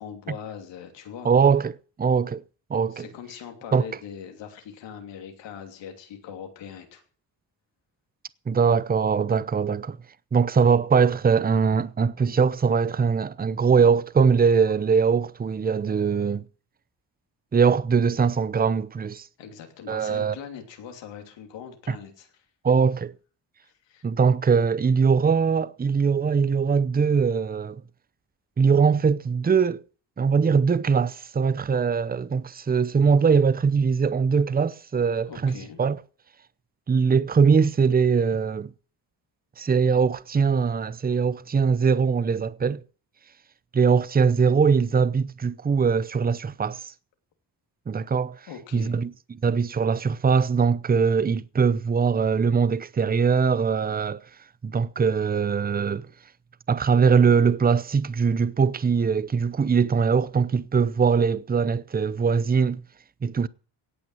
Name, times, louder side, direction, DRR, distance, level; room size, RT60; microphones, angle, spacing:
voice 1, 0.0-1.3 2.9-7.0 19.4-22.4 23.8-24.1 35.3-35.8 48.5-49.0, left 8 dB, 90° left, 3.0 m, -41 dB
voice 2, 1.2-2.4 2.7-3.1 3.7-3.8 8.5-10.0 10.3-16.4 17.5-19.3 19.9-20.3 21.9-22.0 22.6-23.1 24.0-27.8 28.6-29.8 30.2-36.0 36.9-38.7 39.6-42.8 43.7-46.9 47.9-48.4 48.7-54.2 54.6-56.1 56.7-62.8 63.2-63.5, right 5 dB, 20° right, 0.6 m, -21 dB
17.5 x 6.0 x 7.8 m
cardioid pair, 80°, 42 cm